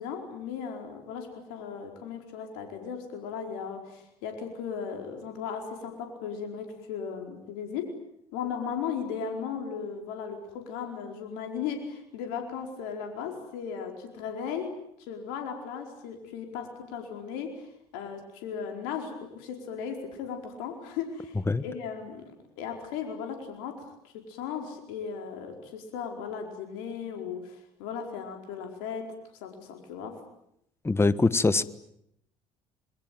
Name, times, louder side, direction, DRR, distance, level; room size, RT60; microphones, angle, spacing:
voice 1, 0.0-8.0 8.3-14.7 15.0-29.1 29.4-30.2, left 7 dB, 75° left, 4 dB, 4.6 m, -36 dB
voice 2, 30.8-31.6, left 3 dB, 15° left, 16 dB, 1.4 m, -23 dB
26.5 x 23.0 x 9.2 m, 0.76 s
hypercardioid pair, 65°, 15 cm